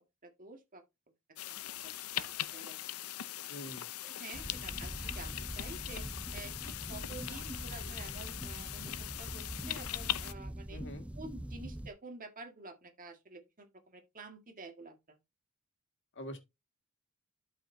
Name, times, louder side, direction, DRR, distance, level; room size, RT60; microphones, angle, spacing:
voice 1, 0.2-0.8 1.8-2.8 3.2-3.3 4.0-6.1 6.3-8.9 9.2-10.8 11.2-15.2, right 3 dB, 40° right, 1.9 m, -50 dB
sound 1, 1.4-10.3, left 13 dB, 75° left, 0.6 m, -40 dB
voice 2, 3.5-3.9 10.7-11.1 16.2-16.4, equal, 55° left, 2.1 m, -44 dB
sound 2, 4.3-11.9, right 1 dB, 5° right, 0.5 m, -43 dB
12.5 x 5.0 x 2.7 m
head